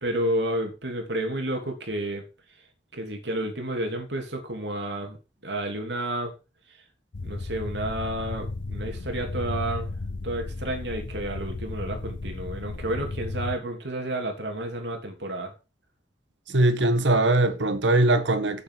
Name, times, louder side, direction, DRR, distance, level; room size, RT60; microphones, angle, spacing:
voice 1, 0.0-2.2 2.9-5.2 5.4-6.3 7.2-9.9 10.2-15.5, right 1 dB, 70° right, 3.0 m, -31 dB
sound 1, 7.1-13.6, left 3 dB, 90° left, 0.7 m, -34 dB
voice 2, 16.5-18.6, right 2 dB, 90° right, 1.6 m, -21 dB
8.7 x 8.0 x 5.9 m
head